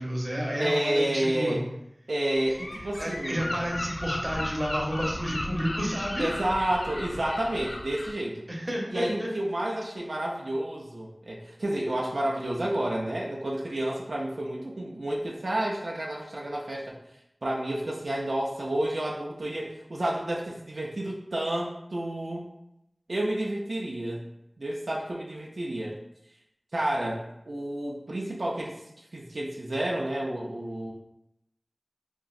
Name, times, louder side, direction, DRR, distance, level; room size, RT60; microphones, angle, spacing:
voice 1, 0.0-1.6 3.0-6.3 8.5-9.3, equal, 35° right, -2 dB, 0.7 m, -30 dB
voice 2, 0.6-1.6 2.1-3.5 6.2-8.5 8.9-16.9 17.4-22.5 23.1-24.2 24.6-26.0 26.7-30.9, right 1 dB, 85° right, -3 dB, 0.3 m, -30 dB
Gull seagull, 2.3-8.1, left 1 dB, 85° left, 0.3 m, -35 dB
2.9 x 2.5 x 2.4 m, 0.82 s
wide cardioid pair, 50°, 0 cm